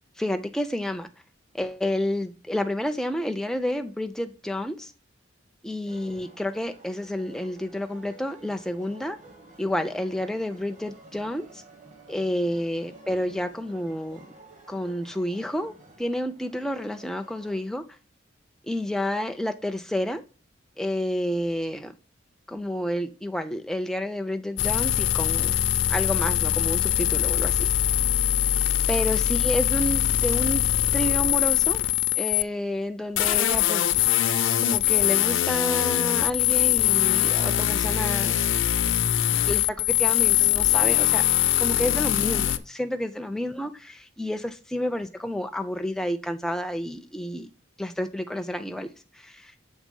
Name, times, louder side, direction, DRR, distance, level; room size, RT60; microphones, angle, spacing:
voice 1, 0.2-1.1 1.5-4.9 5.6-9.2 9.6-11.6 12.1-14.2 14.7-15.7 16.0-17.8 18.7-20.2 20.8-21.9 22.5-25.6 25.9-27.7 28.9-30.6 30.9-31.8 32.2-34.0 34.6-38.4 39.2-41.2 41.6-47.5 47.8-48.9 49.1-49.5, left 1 dB, 5° left, 7 dB, 0.4 m, -30 dB
sound 1, 5.9-17.6, right 2 dB, 35° right, 1.1 m, -51 dB
sound 2, 24.6-32.4 33.2-42.6, left 12 dB, 65° left, 0.5 m, -22 dB
7.3 x 3.4 x 5.3 m, 0.36 s
head